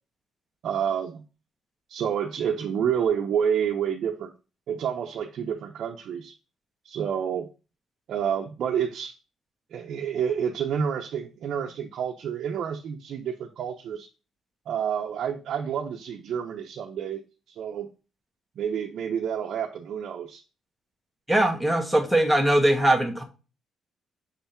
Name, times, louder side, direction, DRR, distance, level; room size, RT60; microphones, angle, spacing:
voice 1, 0.6-1.2 1.9-4.3 4.7-6.3 6.8-7.5 8.1-9.1 9.7-14.1 14.7-17.2 17.5-17.9 18.6-20.4, right 8 dB, 70° right, 0.7 m, -29 dB
voice 2, 21.3-23.2, right 1 dB, ahead, 1.4 m, -21 dB
6.7 x 3.4 x 4.3 m
cardioid pair, 90°, 0 cm